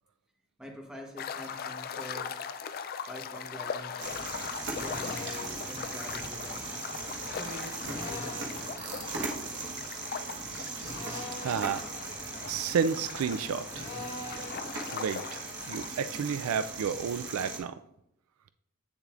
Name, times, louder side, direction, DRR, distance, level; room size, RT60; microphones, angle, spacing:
voice 1, 0.6-2.3 3.1-4.2 4.7-6.7 7.3-9.3, equal, 5° right, -1 dB, 1.0 m, -46 dB
sound 1, 1.2-15.9, left 6 dB, 40° left, 0.3 m, -40 dB
sound 2, 4.0-17.6, right 3 dB, 50° right, 1.3 m, -39 dB
Drill, 4.8-5.6 7.8-8.7 10.8-11.6 13.7-14.6, left 2 dB, 90° left, 2.3 m, -41 dB
voice 2, 11.4-11.9 12.5-13.9 14.9-17.7, right 6 dB, 75° right, 11 dB, 0.3 m, -31 dB
8.1 x 7.1 x 2.5 m, 0.79 s
head